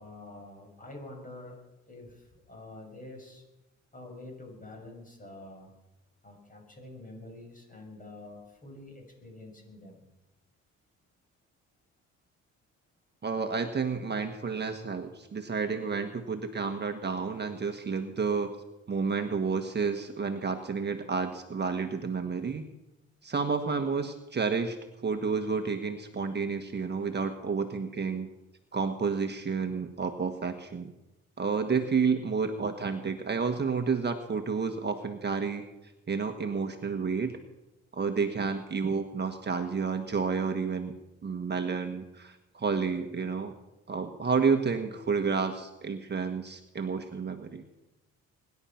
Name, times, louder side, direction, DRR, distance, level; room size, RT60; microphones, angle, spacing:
voice 1, 0.0-1.6 1.9-3.4 3.9-5.7 6.2-10.1, left 2 dB, 25° left, 2 dB, 6.7 m, -47 dB
voice 2, 13.2-18.5 18.9-22.7 23.2-24.8 25.0-28.3 28.7-30.9 31.4-35.6 36.1-37.4 37.9-40.9 41.2-43.5 43.9-47.6, right 5 dB, 35° right, 6 dB, 1.4 m, -30 dB
22.5 x 11.0 x 5.8 m, 0.99 s
cardioid pair, 90°, 30 cm